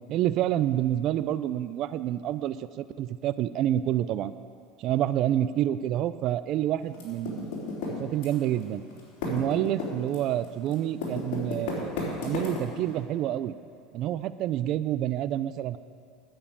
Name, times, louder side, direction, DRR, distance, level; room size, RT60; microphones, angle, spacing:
voice 1, 0.1-4.3 4.8-7.5 8.0-8.8 9.2-13.5 13.9-15.8, right 12 dB, 50° right, 13 dB, 0.4 m, -28 dB
Typing, 6.9-8.6 8.9-12.9, left 3 dB, 75° left, 3.5 m, -33 dB
9.6 x 7.5 x 8.6 m, 2.3 s
supercardioid pair, 120°, 0 cm